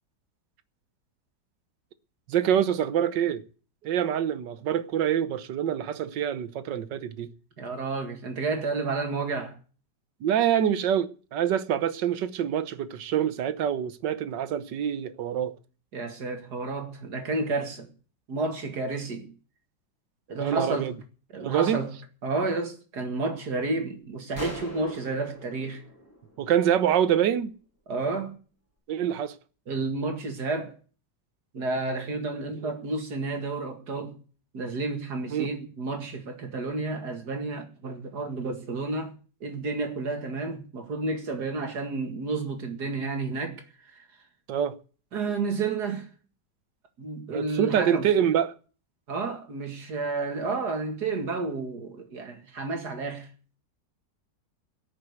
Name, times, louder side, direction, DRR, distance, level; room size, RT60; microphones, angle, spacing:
voice 1, 2.3-3.4 3.8-7.3 10.2-15.6 20.4-20.9 21.4-21.8 26.4-27.5 28.9-29.4 35.3-35.5 44.5-44.8 47.3-48.6, right 9 dB, 85° right, 1.6 m, -26 dB
voice 2, 7.6-9.6 15.9-17.9 18.3-19.3 20.3-20.9 21.3-21.9 22.2-25.8 27.9-28.4 29.7-30.8 31.5-34.2 34.5-39.1 39.4-44.0 45.1-46.1 47.0-48.1 49.1-53.3, right 3 dB, 65° right, 2.6 m, -31 dB
sound 1, 24.3-26.9, right 1 dB, 10° left, 6.4 m, -41 dB
18.0 x 6.6 x 8.0 m
omnidirectional pair, 1.9 m